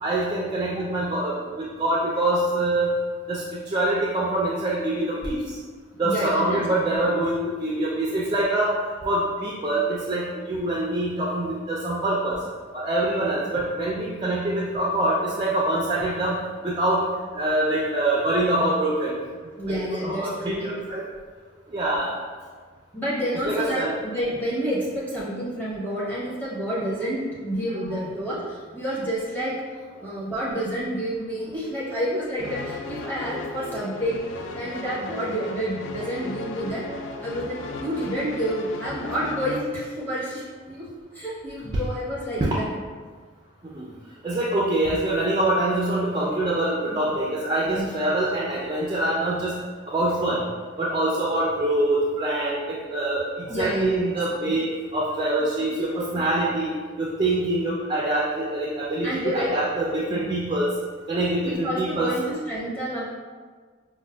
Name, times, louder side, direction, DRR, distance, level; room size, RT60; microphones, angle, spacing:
voice 1, 0.0-2.9 3.3-5.6 6.0-8.8 9.0-12.4 12.7-19.1 20.0-21.0 21.7-22.2 23.4-23.9 27.9-28.0 37.0-37.1 43.6-43.9 44.2-50.4 50.8-54.6 54.9-60.7 61.1-62.1, right 1 dB, 25° right, -5 dB, 0.3 m, -25 dB
voice 2, 6.0-6.6 6.9-7.1 17.7-17.9 19.6-20.7 22.9-29.5 30.0-36.8 37.2-40.9 41.1-42.7 46.9-47.0 47.6-47.9 53.5-54.5 59.0-59.5 60.1-60.3 61.4-63.0, equal, 10° left, -9 dB, 0.8 m, -29 dB
sound 1, 32.4-39.6, left 3 dB, 75° left, 0.3 m, -36 dB
5.0 x 2.1 x 2.2 m, 1.5 s
head